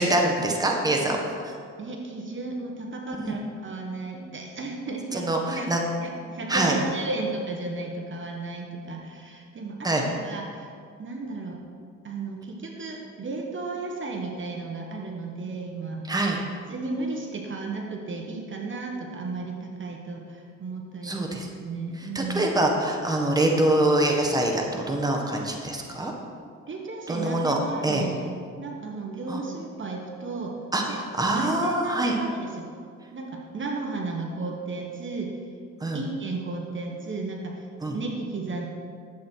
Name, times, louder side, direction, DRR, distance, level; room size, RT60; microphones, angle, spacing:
voice 1, 0.0-1.5 3.2-3.3 5.1-5.8 6.5-6.7 9.8-10.0 16.1-16.4 21.0-21.5 22.0-26.1 27.1-27.6 27.8-28.1 29.3-29.4 30.7-32.1 35.8-36.0 37.8-38.0, right 1 dB, 10° right, 1 dB, 1.5 m, -24 dB
voice 2, 1.8-5.7 6.0-10.7 11.0-11.6 12.0-16.0 16.7-21.2 21.6-22.5 26.7-32.7 33.1-35.4 35.9-38.7, right 3 dB, 40° right, 1 dB, 1.4 m, -34 dB
11.5 x 8.1 x 4.6 m, 2.2 s
cardioid pair, 90°, 30 cm